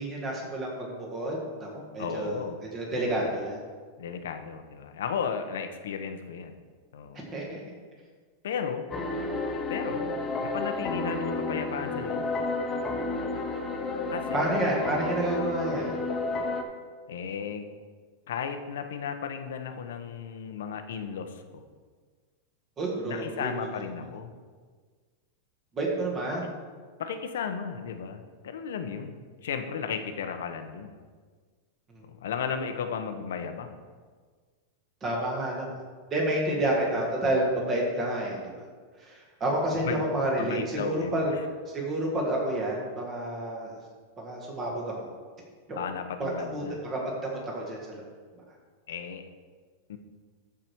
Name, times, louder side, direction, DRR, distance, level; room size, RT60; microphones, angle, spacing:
voice 1, 0.0-2.4 2.7-3.6 7.3-7.6 14.3-15.9 22.8-23.7 25.7-26.5 35.0-35.7 36.1-38.5 39.0-41.3 41.7-43.8 44.2-44.9 45.7-45.8 46.2-48.0, right 1 dB, 15° right, -2 dB, 1.8 m, -29 dB
voice 2, 2.0-2.6 2.9-3.3 4.0-6.6 6.9-7.2 8.4-8.8 9.7-10.1 10.4-12.3 14.1-14.5 17.1-17.7 18.3-21.6 23.0-24.3 27.0-31.0 32.0-33.8 39.7-40.0 40.4-41.4 45.7-46.8 48.9-49.2 49.9-50.0, left 6 dB, 80° left, 7 dB, 1.0 m, -34 dB
sound 1, 8.9-16.6, left 3 dB, 15° left, 0.6 m, -31 dB
13.5 x 4.9 x 4.6 m, 1.5 s
supercardioid pair, 175°, 0 cm